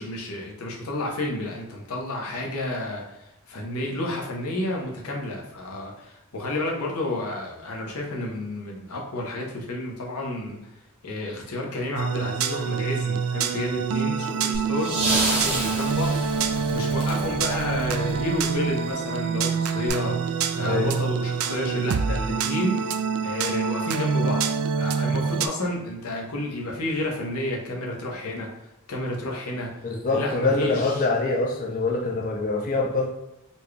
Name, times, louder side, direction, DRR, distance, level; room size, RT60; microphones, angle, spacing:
voice 1, 0.0-10.6 11.0-24.5 24.8-28.5 28.9-29.8 30.1-31.1, left 1 dB, 90° left, 0 dB, 0.9 m, -31 dB
sound 1, 12.0-25.5, right 6 dB, 80° right, 0.3 m, -26 dB
sound 2, 14.5-18.7 19.9-20.0, right 2 dB, 30° right, 0.8 m, -29 dB
voice 2, 29.8-33.1, left 3 dB, 40° left, 0 dB, 0.4 m, -24 dB
4.2 x 2.2 x 3.2 m, 0.89 s
head